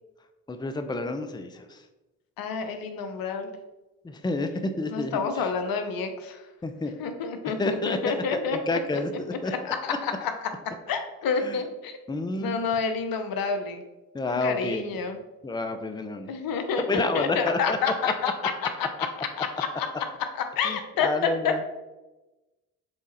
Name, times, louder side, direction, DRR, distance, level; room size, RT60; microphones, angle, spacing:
voice 1, 0.5-1.8 4.0-5.2 6.6-7.0 7.6-9.5 11.4-11.6 12.1-12.6 14.1-14.8 15.4-16.3 16.9-17.8 18.0-18.1 20.6-21.6, left 2 dB, 10° left, 8 dB, 0.7 m, -29 dB
voice 2, 2.4-3.6 4.9-6.4 7.0-9.0 9.4-10.5 10.9-12.0 12.4-13.8 14.3-15.2 16.3-19.1 19.4-19.9 20.3-21.6, left 5 dB, 65° left, 7 dB, 1.0 m, -29 dB
7.5 x 3.7 x 4.2 m, 1.1 s
hypercardioid pair, 50°, 38 cm